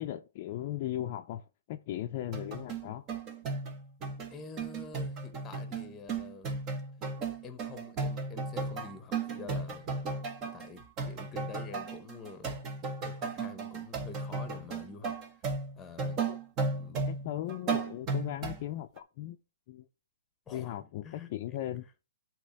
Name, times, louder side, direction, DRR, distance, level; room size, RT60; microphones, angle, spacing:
voice 1, 0.0-3.2 16.3-16.4 17.1-19.4 19.7-19.9 20.5-21.8, left 13 dB, 45° left, 0.5 m, -37 dB
sound 1, 2.2-18.6 19.0-19.1, right 4 dB, 30° right, 1.2 m, -35 dB
voice 2, 4.3-6.5 7.4-9.9 10.4-12.6 13.0-15.2 15.8-16.2 16.7-17.1 20.5-21.6, left 5 dB, 15° left, 1.0 m, -47 dB
8.3 x 3.0 x 5.7 m
hypercardioid pair, 135°, 0 cm